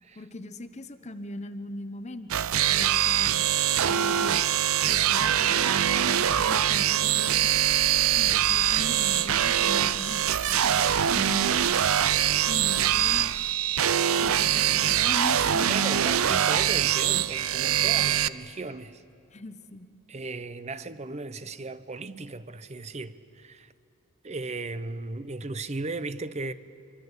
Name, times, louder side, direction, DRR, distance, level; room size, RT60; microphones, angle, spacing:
voice 1, 0.2-3.4 3.9-4.4 4.9-7.5 8.2-10.2 10.5-11.9 12.4-13.3 14.1-16.1 19.3-19.9, left 1 dB, 30° left, 0.9 m, -40 dB
sound 1, 2.3-18.3, right 10 dB, 75° right, 0.5 m, -23 dB
sound 2, 7.4-13.5, left 3 dB, 75° left, 1.5 m, -45 dB
voice 2, 15.6-19.0 20.1-23.7 24.2-26.5, right 3 dB, 30° right, 0.7 m, -36 dB
25.5 x 24.5 x 8.2 m
head